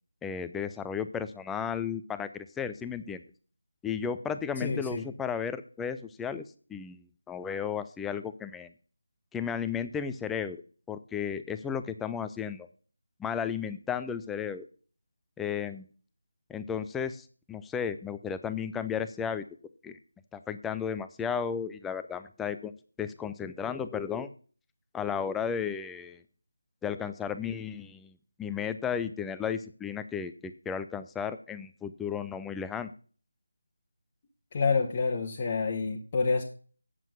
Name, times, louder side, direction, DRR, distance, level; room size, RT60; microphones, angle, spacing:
voice 1, 0.2-3.2 3.8-6.4 6.7-8.7 9.3-10.6 10.9-12.7 13.2-14.7 15.4-15.8 16.5-19.4 19.8-20.0 20.3-22.7 23.0-24.3 24.9-26.2 26.8-28.1 28.4-32.9, left 7 dB, 5° left, 10 dB, 0.4 m, -34 dB
voice 2, 4.6-5.0 34.5-36.4, left 4 dB, 30° left, 1 dB, 1.0 m, -28 dB
9.0 x 7.5 x 6.0 m, 0.41 s
figure-of-eight pair, 160°, 0 cm